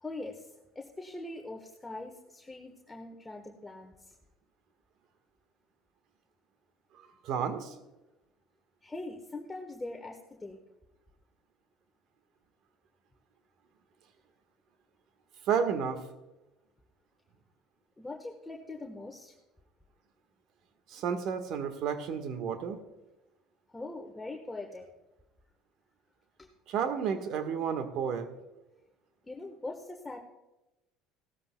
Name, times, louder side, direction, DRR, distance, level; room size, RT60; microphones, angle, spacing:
voice 1, 0.0-4.1 8.8-10.6 18.0-19.4 23.7-24.9 26.4-26.5 29.2-30.2, left 2 dB, 15° left, 2 dB, 1.3 m, -42 dB
voice 2, 7.2-7.7 15.5-16.0 20.9-22.8 26.7-28.3, right 7 dB, 60° right, 9 dB, 1.5 m, -31 dB
17.0 x 13.5 x 2.3 m, 1.0 s
hypercardioid pair, 80°, 0 cm